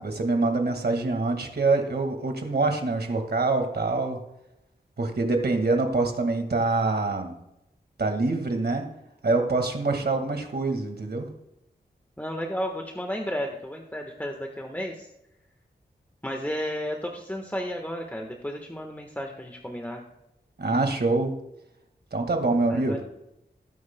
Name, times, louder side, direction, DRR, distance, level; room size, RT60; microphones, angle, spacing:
voice 1, 0.0-4.2 5.0-7.3 8.0-8.9 9.2-11.3 20.6-21.3 22.1-23.0, right 3 dB, 65° right, 4 dB, 1.8 m, -25 dB
voice 2, 12.2-15.1 16.2-20.0 22.7-23.0, equal, 10° left, 2 dB, 1.2 m, -33 dB
19.5 x 9.4 x 2.2 m, 0.86 s
wide cardioid pair, 70°, 18 cm